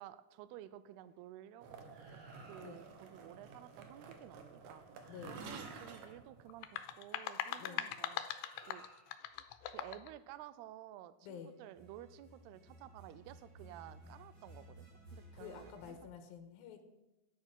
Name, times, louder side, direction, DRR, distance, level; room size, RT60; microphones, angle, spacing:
voice 1, 0.0-4.8 5.2-8.2 8.6-8.8 9.7-16.0, right 13 dB, 80° right, 14 dB, 2.4 m, -53 dB
sound 1, 1.6-7.0, right 4 dB, 65° right, 2.5 m, -52 dB
sound 2, 1.9-3.0 4.7-4.8 5.0-6.2 8.1-9.3 11.6-15.9, right 1 dB, 35° right, 7.4 m, -58 dB
voice 2, 5.1-5.4 7.6-7.9 11.2-11.5 15.3-16.8, left 8 dB, 70° left, 6 dB, 2.6 m, -50 dB
sound 3, 6.5-10.1, left 11 dB, 85° left, 2.8 m, -41 dB
12.5 x 10.5 x 5.9 m, 0.99 s
omnidirectional pair, 5.0 m